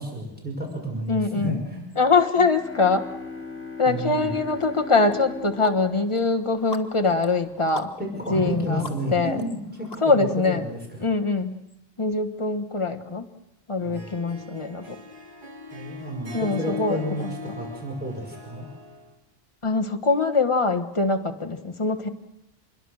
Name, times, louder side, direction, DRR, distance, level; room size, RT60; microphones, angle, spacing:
voice 1, 0.0-1.9 3.9-4.3 8.0-11.1 13.8-14.0 15.7-18.7, equal, 10° right, 0 dB, 5.2 m, -31 dB
voice 2, 1.1-1.6 2.0-3.1 3.8-7.9 8.3-9.4 10.0-10.7 11.0-11.5 12.0-13.3 13.7-15.0 16.3-17.3 19.6-22.1, left 3 dB, 25° left, 6 dB, 1.4 m, -23 dB
sound 1, 2.3-7.0, left 3 dB, 10° left, 1.7 m, -38 dB
sound 2, 4.6-4.7 5.1-10.5, left 2 dB, 60° left, 1.8 m, -42 dB
Harp, 13.8-19.1, left 3 dB, 50° right, 2.6 m, -40 dB
26.0 x 21.5 x 6.5 m, 0.85 s
omnidirectional pair, 1.1 m